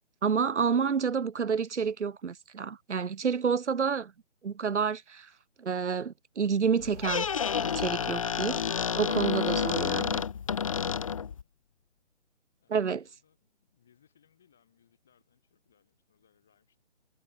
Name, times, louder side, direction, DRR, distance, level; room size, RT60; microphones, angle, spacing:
voice 1, 0.2-4.1 4.4-5.3 5.6-10.2 12.7-13.0, right 6 dB, 70° right, 1.1 m, -29 dB
Squeak, 6.8-11.4, left 7 dB, 25° left, 2.2 m, -30 dB
voice 2, 10.2-11.5 12.6-16.8, left 8 dB, ahead, 0.8 m, -68 dB
hypercardioid pair, 175°, 37 cm